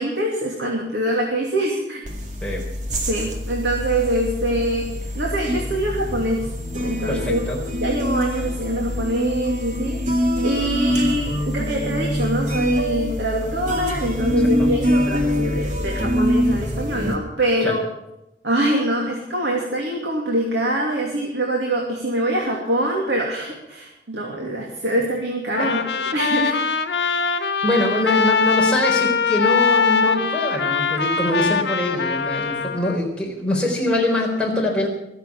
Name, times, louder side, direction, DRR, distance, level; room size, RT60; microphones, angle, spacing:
voice 1, 0.0-2.0 3.1-6.5 6.8-7.4 7.7-10.2 10.4-17.8 18.4-26.5, right 1 dB, 85° right, -1 dB, 2.7 m, -24 dB
sound 1, 2.1-17.2, equal, 45° right, 2.3 m, -24 dB
voice 2, 7.1-7.6 14.6-14.7 17.6-17.7 25.6-25.7 27.6-34.9, left 1 dB, 5° left, -2 dB, 4.0 m, -23 dB
Trumpet, 25.5-33.0, left 5 dB, 75° left, 1.4 m, -22 dB
22.5 x 7.6 x 7.2 m, 0.87 s
head